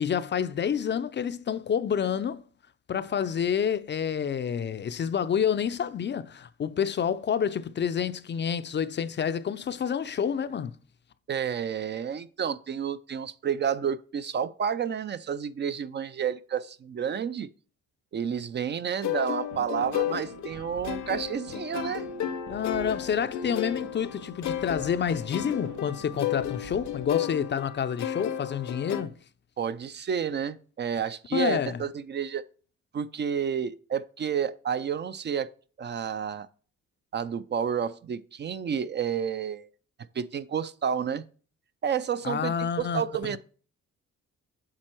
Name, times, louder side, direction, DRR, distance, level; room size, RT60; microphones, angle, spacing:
voice 1, 0.0-2.4 2.9-10.8 22.5-29.1 31.3-31.8 42.2-43.4, left 8 dB, 40° left, 0.5 m, -28 dB
voice 2, 11.3-17.5 18.1-22.0 29.6-32.4 32.9-35.5 35.8-36.5 37.1-39.7 40.1-41.2 41.8-43.4, right 7 dB, 35° right, 0.4 m, -30 dB
sound 1, 19.0-29.0, left 10 dB, 65° left, 0.8 m, -33 dB
sound 2, 19.5-27.3, right 8 dB, 65° right, 0.8 m, -48 dB
7.6 x 4.3 x 4.4 m
cardioid pair, 90°, 30 cm